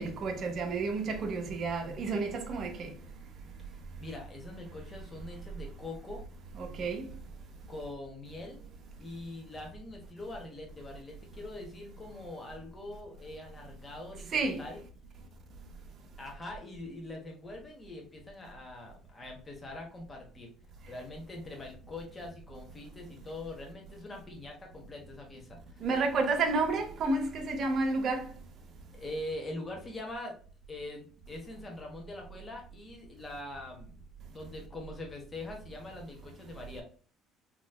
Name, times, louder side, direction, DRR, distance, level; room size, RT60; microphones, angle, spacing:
voice 1, 0.0-2.9 6.6-7.0 14.3-14.6 25.8-28.3, right 3 dB, 50° right, 0.8 m, -30 dB
voice 2, 3.6-6.2 7.7-8.6 9.0-14.8 16.2-20.5 20.9-25.9 28.9-30.4 30.7-34.0 34.3-36.8, left 2 dB, 25° left, 1.2 m, -43 dB
3.2 x 3.0 x 2.3 m
supercardioid pair, 90°, 0 cm